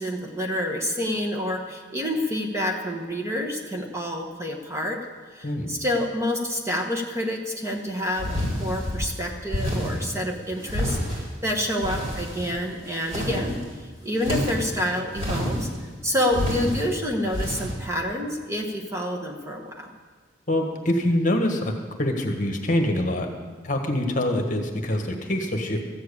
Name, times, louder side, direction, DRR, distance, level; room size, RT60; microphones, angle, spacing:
voice 1, 0.0-5.0 5.3-15.7 16.0-19.9, left 1 dB, 15° right, 1 dB, 1.2 m, -28 dB
sound 1, 8.2-9.1 9.5-10.1 10.6-11.3 11.7-12.6 12.9-13.6 14.2-14.7 15.1-15.8 16.3-16.8 17.3-17.7, equal, 35° right, 3.9 m, -28 dB
voice 2, 20.5-21.7 22.0-23.3 23.6-25.8, left 1 dB, 40° left, 4 dB, 1.4 m, -24 dB
14.0 x 7.6 x 8.5 m, 1.5 s
head